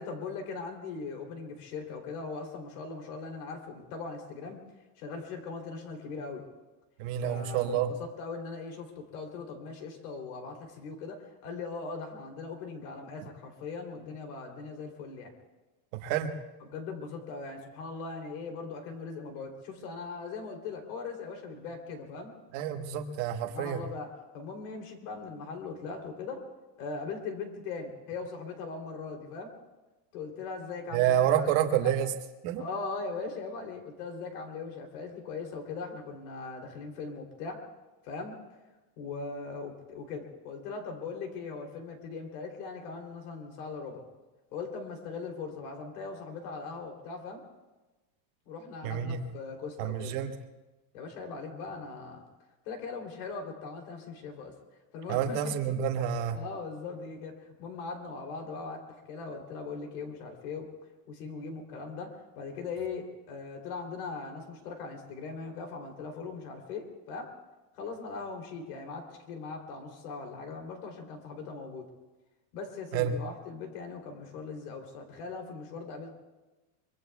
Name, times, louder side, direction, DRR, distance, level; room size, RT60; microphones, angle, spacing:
voice 1, 0.0-4.6 5.0-6.4 7.2-15.3 16.6-22.3 23.4-26.4 26.8-29.5 30.1-31.9 32.6-37.6 38.0-38.3 39.0-44.0 44.5-47.4 48.5-50.1 50.9-52.2 52.6-54.5 54.9-55.7 56.3-60.7 61.1-67.3 67.7-71.9 72.5-76.1, left 4 dB, 65° left, 3 dB, 3.3 m, -40 dB
voice 2, 7.0-7.9 16.0-16.3 22.5-23.8 30.9-32.1 32.4-32.6 48.8-49.2 49.8-50.3 55.1-56.4 72.9-73.2, right 10 dB, 45° right, 5 dB, 1.3 m, -28 dB
24.5 x 24.0 x 2.3 m, 1.1 s
supercardioid pair, 175°, 48 cm